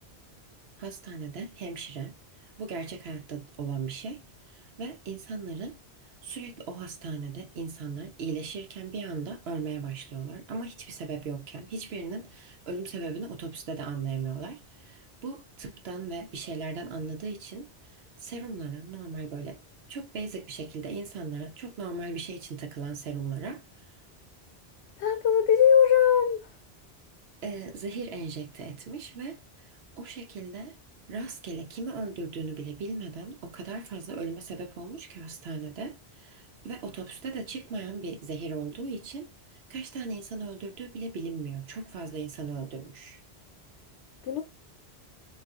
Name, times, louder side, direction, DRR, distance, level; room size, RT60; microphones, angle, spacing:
voice 1, 0.8-5.8 6.2-19.6 19.9-23.6 27.4-30.8 31.1-39.3 39.7-43.2, right 4 dB, 70° right, 0.9 m, -37 dB
voice 2, 25.0-26.5 44.2-44.4, left 8 dB, 80° left, 0.9 m, -21 dB
3.9 x 2.3 x 2.4 m
omnidirectional pair, 1.1 m